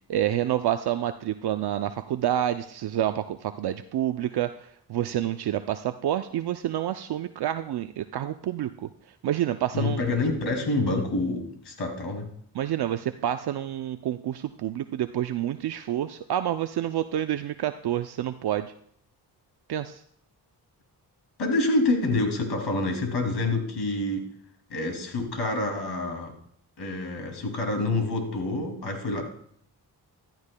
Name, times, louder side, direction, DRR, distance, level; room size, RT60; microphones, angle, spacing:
voice 1, 0.1-8.9 9.2-10.0 12.5-18.7 19.7-20.0, right 11 dB, 65° right, 9 dB, 0.5 m, -28 dB
voice 2, 9.7-12.3 21.4-24.3 24.7-26.3 26.8-29.2, left 2 dB, 65° left, 3 dB, 2.6 m, -27 dB
14.5 x 12.0 x 2.2 m, 0.66 s
cardioid pair, 75°, 41 cm